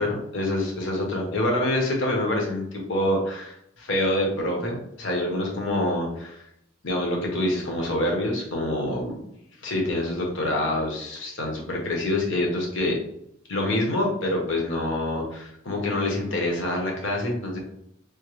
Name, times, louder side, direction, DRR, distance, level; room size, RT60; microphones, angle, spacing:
voice 1, 0.0-6.5 6.8-9.2 9.6-13.0 13.5-17.6, left 1 dB, 65° left, 0 dB, 0.9 m, -26 dB
3.5 x 2.2 x 3.1 m, 0.76 s
head